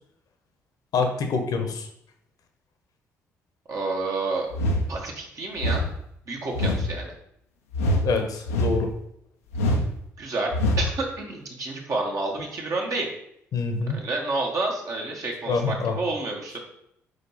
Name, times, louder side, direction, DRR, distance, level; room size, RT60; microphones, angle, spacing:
voice 1, 0.9-1.9 8.0-8.9 13.5-14.0 15.5-15.9, left 4 dB, 60° left, 5 dB, 1.0 m, -25 dB
voice 2, 3.7-4.5 4.9-5.9 6.3-7.1 10.2-13.1 13.9-16.6, right 3 dB, 50° right, -1 dB, 1.8 m, -29 dB
sound 1, 4.5-4.9 5.6-5.9 6.5-6.9 7.7-8.1 8.5-8.9 9.5-9.9 10.5-10.9, left 1 dB, 85° left, 0.7 m, -24 dB
5.0 x 4.8 x 4.2 m, 0.73 s
hypercardioid pair, 45°, 7 cm